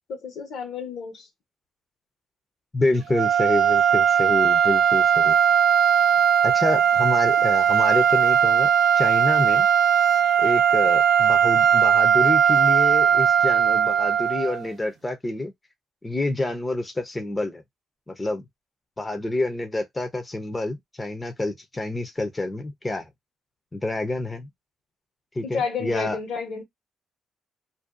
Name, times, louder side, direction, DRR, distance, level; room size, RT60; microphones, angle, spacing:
voice 1, 0.1-1.3 25.4-26.6, left 5 dB, 75° left, 1.1 m, -31 dB
voice 2, 2.7-5.4 6.4-8.7 8.9-9.7 10.4-15.5 16.0-17.6 18.1-18.4 19.0-23.1 23.7-24.5 25.3-26.2, left 2 dB, 20° left, 0.6 m, -27 dB
sound 1, 3.1-14.6, right 8 dB, 85° right, 0.5 m, -19 dB
2.6 x 2.2 x 2.4 m
cardioid pair, 90°, 0 cm